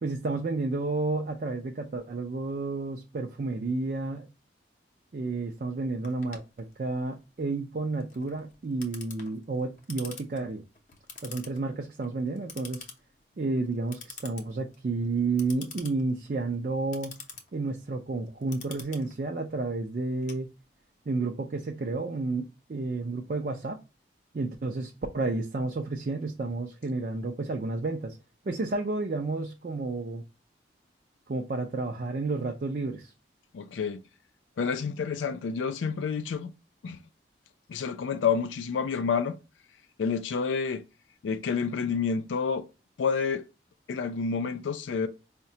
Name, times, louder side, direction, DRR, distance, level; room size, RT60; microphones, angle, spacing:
voice 1, 0.0-4.3 5.1-10.6 11.2-12.9 13.4-17.1 17.5-20.5 21.1-23.8 24.3-28.2 28.5-30.2 31.3-33.1, right 3 dB, 45° right, 0.4 m, -31 dB
Clock, 6.0-21.0, left 5 dB, 40° left, 0.6 m, -48 dB
voice 2, 33.5-34.0 34.6-36.5 36.8-37.0 37.7-39.4 40.0-40.8 41.2-42.7 43.0-43.4 43.9-45.1, left 6 dB, 90° left, 0.4 m, -29 dB
4.7 x 2.1 x 2.7 m
head